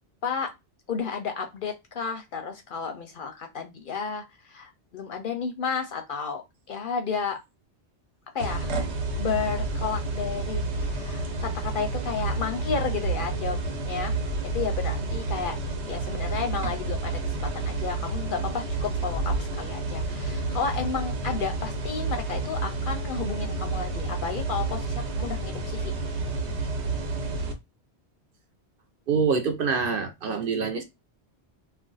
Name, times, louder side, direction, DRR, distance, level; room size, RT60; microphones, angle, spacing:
voice 1, 0.9-6.4 6.7-7.4 8.3-8.7 9.2-13.6 13.8-14.1 14.5-15.5 15.8-25.9, left 6 dB, 60° left, 0.6 m, -32 dB
sound 1, 8.4-27.5, right 3 dB, 80° right, 1.0 m, -30 dB
voice 2, 29.1-30.8, right 5 dB, 60° right, 0.7 m, -25 dB
2.5 x 2.2 x 3.8 m
omnidirectional pair, 1.1 m